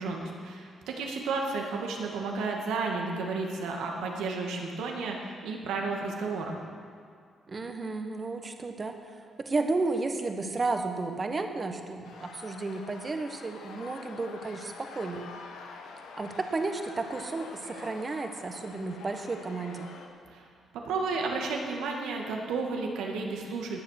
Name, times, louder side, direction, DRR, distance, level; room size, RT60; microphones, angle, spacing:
voice 1, 0.0-6.6 20.3-20.4 20.8-23.8, right 4 dB, 85° right, 1 dB, 1.9 m, -32 dB
voice 2, 7.5-15.3 16.2-19.9, right 3 dB, 35° right, 6 dB, 1.4 m, -33 dB
sound 1, 12.0-20.1, left 4 dB, 90° left, 1.2 m, -46 dB
19.5 x 7.4 x 6.6 m, 2.2 s
cardioid pair, 75°, 0 cm